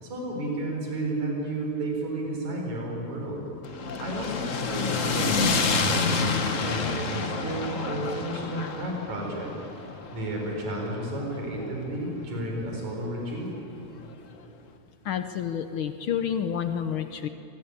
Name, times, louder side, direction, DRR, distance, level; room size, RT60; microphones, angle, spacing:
voice 1, 0.0-3.5 4.0-9.5 10.1-13.5, right 1 dB, 70° right, 0 dB, 5.9 m, -32 dB
sound 1, 3.6-11.9, left 4 dB, 55° left, 0.8 m, -29 dB
voice 2, 15.0-17.3, left 8 dB, 75° left, 9 dB, 1.2 m, -29 dB
24.5 x 21.5 x 8.9 m, 2.9 s
omnidirectional pair, 3.4 m